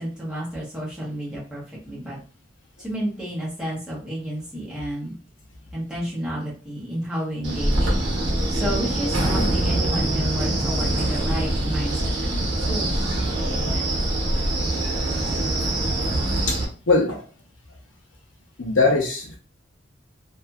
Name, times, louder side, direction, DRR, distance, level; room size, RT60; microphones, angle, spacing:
voice 1, 0.0-2.2 2.8-5.1 5.7-7.9 8.5-13.2, equal, 5° right, -7 dB, 0.9 m, -31 dB
Wind, 7.4-16.6, right 1 dB, 85° right, 0.8 m, -24 dB
voice 2, 16.9-17.2 18.6-19.4, left 3 dB, 90° left, 1 dB, 0.8 m, -20 dB
2.6 x 2.6 x 2.3 m, 0.38 s
head